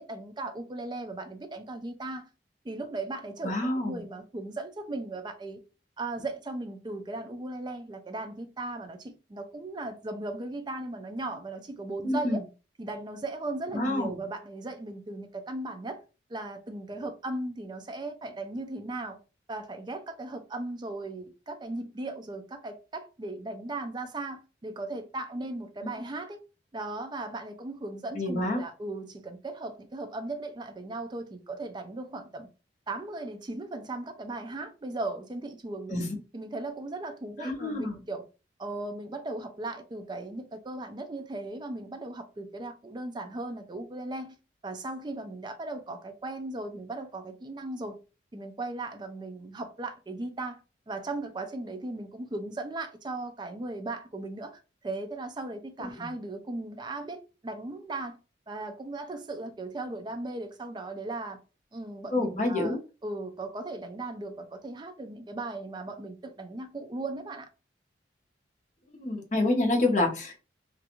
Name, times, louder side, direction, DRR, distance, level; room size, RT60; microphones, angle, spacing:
voice 1, 0.0-2.3 2.6-5.6 6.0-12.4 12.8-16.0 16.3-19.2 19.5-26.4 26.7-32.5 32.9-36.0 36.3-38.2 38.6-44.4 44.6-48.0 48.3-50.6 50.9-58.2 58.5-61.4 61.7-67.5, right 2 dB, 25° right, 0.3 m, -37 dB
voice 2, 3.4-4.0 12.0-12.4 13.7-14.2 25.8-25.9 28.1-28.6 35.9-36.1 37.4-38.0 55.8-56.1 62.1-62.8 69.0-70.4, left 2 dB, 40° left, 0.6 m, -28 dB
2.4 x 2.2 x 2.9 m
head